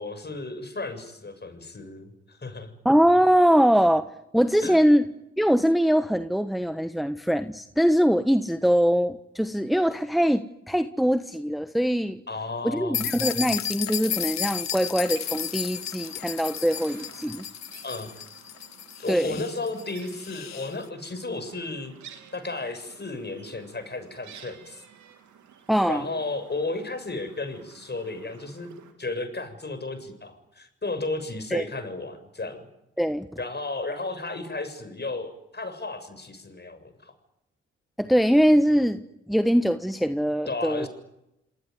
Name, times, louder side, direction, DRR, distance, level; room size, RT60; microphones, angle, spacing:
voice 1, 0.0-2.7 4.6-4.8 12.3-13.1 17.8-18.2 19.0-24.8 25.9-28.7 29.0-32.7 33.4-37.1 40.5-40.9, left 3 dB, 35° left, 8 dB, 7.4 m, -34 dB
voice 2, 2.8-4.0 4.3-5.1 5.4-12.2 12.6-17.4 19.1-19.4 25.7-26.1 31.5-31.6 33.0-33.3 38.0-39.0 39.3-40.9, equal, ahead, 9 dB, 1.3 m, -22 dB
sound 1, 12.9-20.7, left 9 dB, 65° left, 1.0 m, -33 dB
sound 2, 15.1-28.9, right 8 dB, 75° right, 3.3 m, -50 dB
28.5 x 20.0 x 9.6 m, 0.86 s
supercardioid pair, 45°, 29 cm